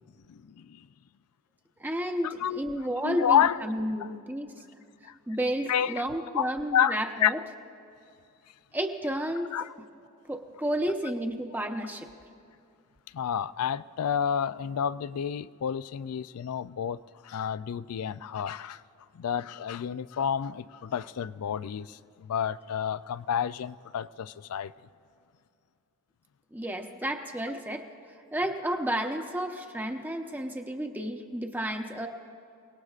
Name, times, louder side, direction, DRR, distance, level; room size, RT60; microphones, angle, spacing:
voice 1, 0.3-0.9 2.2-3.6 4.0-4.2 5.0-5.2 5.7-6.1 6.3-7.3 9.5-9.7 13.1-18.8 19.1-24.7, left 8 dB, 90° left, 0.4 m, -30 dB
voice 2, 1.8-4.5 5.3-7.4 8.7-9.5 10.3-12.1 26.5-27.9 28.3-32.1, equal, 10° right, 0.8 m, -31 dB
29.0 x 19.0 x 2.4 m
head